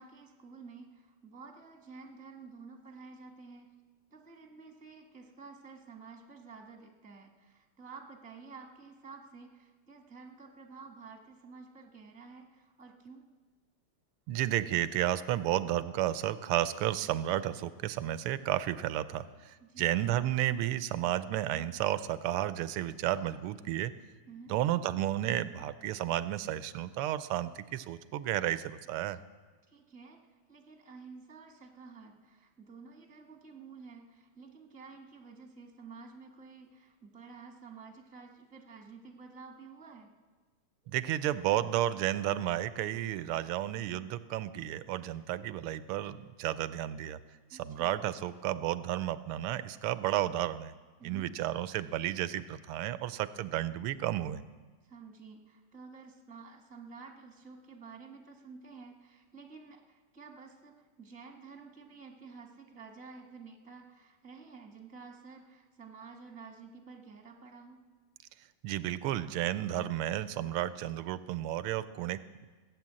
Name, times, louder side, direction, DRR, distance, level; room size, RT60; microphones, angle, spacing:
voice 1, 0.0-3.7 4.1-13.3 19.6-19.9 24.3-24.5 29.7-30.2 30.5-40.1 47.5-47.9 51.0-51.3 54.8-67.8, right 4 dB, 5° right, 3 dB, 1.1 m, -51 dB
voice 2, 14.3-23.9 24.5-29.2 40.9-47.2 47.5-50.7 51.0-54.4 68.6-72.5, right 13 dB, 90° right, 14 dB, 1.5 m, -32 dB
17.0 x 9.0 x 7.5 m, 1.4 s
omnidirectional pair, 2.4 m